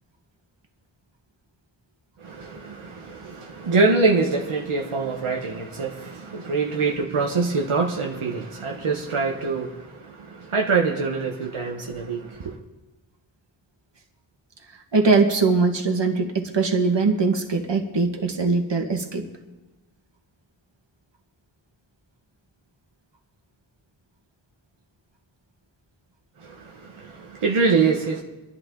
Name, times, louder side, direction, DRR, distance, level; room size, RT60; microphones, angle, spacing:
voice 1, 2.2-12.6 26.4-28.2, right 4 dB, 90° right, 1.3 m, -24 dB
voice 2, 14.9-19.3, right 4 dB, 60° right, 1.9 m, -21 dB
24.5 x 11.0 x 3.9 m
wide cardioid pair, 65°, 48 cm